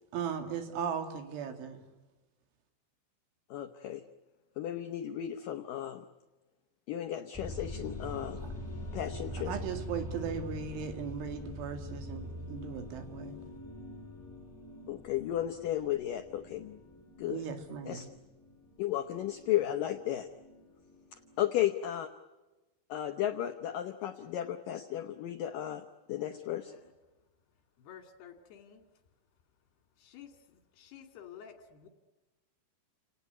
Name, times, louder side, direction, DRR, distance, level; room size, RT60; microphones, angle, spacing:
voice 1, 0.1-1.8 9.3-13.4 17.3-18.1, right 7 dB, 90° right, 7 dB, 4.9 m, -37 dB
voice 2, 3.5-4.0 4.6-6.0 6.9-8.4 8.9-9.6 14.9-16.8 17.2-17.4 17.9-18.1 18.8-20.3 21.4-22.1 22.9-25.8 26.1-26.7, left 12 dB, 80° left, 7 dB, 1.9 m, -34 dB
sound 1, 7.3-21.4, left 1 dB, 5° left, 5.6 m, -44 dB
voice 3, 26.2-26.9 27.8-28.8 30.0-31.9, left 8 dB, 65° left, 7 dB, 4.1 m, -52 dB
30.0 x 18.5 x 9.4 m, 1.1 s
omnidirectional pair, 5.4 m